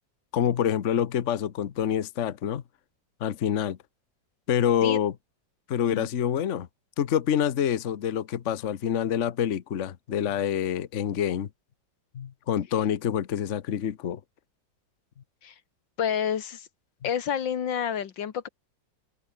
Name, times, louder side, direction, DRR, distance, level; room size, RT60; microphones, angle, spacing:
voice 1, 0.3-2.6 3.2-3.8 4.5-5.1 5.7-6.7 7.0-11.5 12.1-14.2, left 9 dB, 50° left, 1.1 m, -26 dB
voice 2, 16.0-16.7 17.0-18.5, left 8 dB, 80° left, 2.1 m, -29 dB
open air
omnidirectional pair, 2.0 m